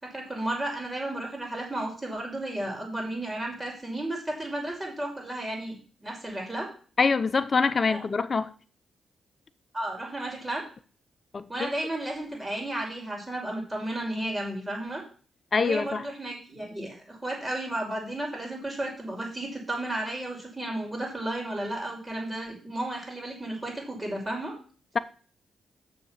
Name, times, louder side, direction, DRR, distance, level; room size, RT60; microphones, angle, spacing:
voice 1, 0.0-6.7 7.9-8.0 9.7-10.6 11.5-15.0 15.6-24.5, right 1 dB, 20° right, 5.6 m, -33 dB
voice 2, 7.0-8.5 11.3-11.7 15.5-16.0, left 4 dB, 40° left, 0.7 m, -25 dB
6.9 x 6.8 x 7.4 m
cardioid pair, 70°, 0 cm